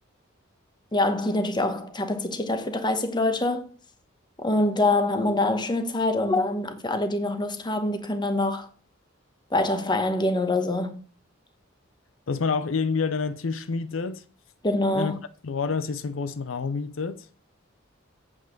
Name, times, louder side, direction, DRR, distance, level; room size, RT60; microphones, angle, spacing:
voice 1, 0.9-3.7 4.4-8.7 9.5-11.0 14.6-15.2, left 2 dB, 25° left, 1.1 m, -25 dB
voice 2, 12.3-14.2 14.9-17.3, left 4 dB, 80° left, 0.6 m, -28 dB
8.1 x 5.4 x 7.2 m
head